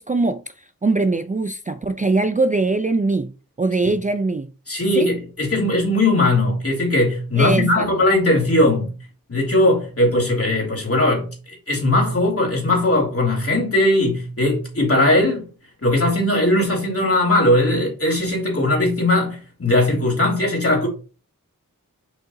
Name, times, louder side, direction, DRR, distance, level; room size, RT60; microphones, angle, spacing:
voice 1, 0.0-3.3 3.6-4.5 4.9-5.1 7.4-7.9, right 3 dB, 25° right, 0.4 m, -21 dB
voice 2, 4.7-8.9 9.3-15.5 15.8-20.9, left 1 dB, 40° left, 2.8 m, -19 dB
6.5 x 5.3 x 2.7 m
wide cardioid pair, 60°, 35 cm